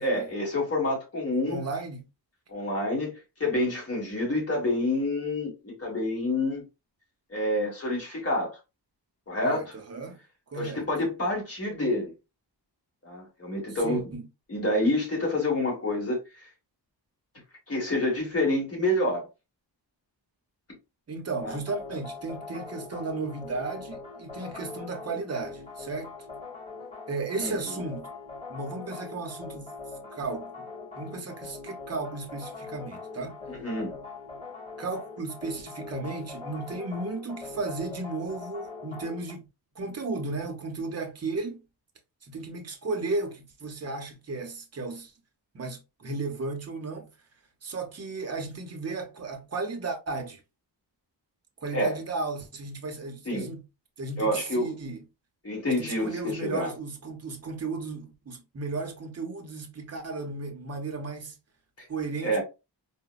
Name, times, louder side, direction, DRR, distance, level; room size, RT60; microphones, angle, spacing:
voice 1, 0.0-1.6 2.5-3.1 3.4-6.6 7.3-8.6 9.3-9.7 10.6-12.1 13.0-14.1 14.5-16.2 17.7-19.3 21.4-21.6 27.4-27.8 33.5-34.0 51.7-52.0 53.2-53.5 54.2-54.7 55.4-56.7 62.2-62.4, left 1 dB, 35° left, 1.4 m, -28 dB
voice 2, 1.5-2.1 9.4-10.2 10.5-10.8 13.7-14.3 21.1-26.1 27.1-28.1 28.5-29.7 30.1-30.7 31.0-33.4 34.8-39.5 39.8-41.6 42.2-45.1 45.5-47.1 47.6-50.4 51.6-53.6 54.0-55.0 55.7-61.4 61.9-62.4, right 3 dB, 35° right, 0.6 m, -34 dB
sound 1, 21.4-39.3, left 4 dB, 15° left, 1.7 m, -42 dB
3.8 x 2.1 x 2.3 m
wide cardioid pair, 150°, 44 cm